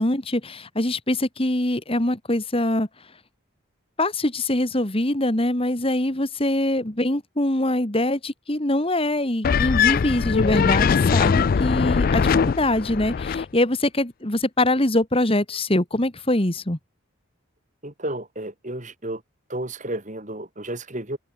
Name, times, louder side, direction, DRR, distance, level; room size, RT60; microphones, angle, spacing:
voice 1, 0.0-2.9 4.0-16.8, left 1 dB, 25° left, 1.9 m, -23 dB
sound 1, 9.4-13.5, left 6 dB, 45° left, 0.3 m, -21 dB
voice 2, 17.8-19.2 19.5-21.2, right 1 dB, 35° right, 3.2 m, -32 dB
open air
head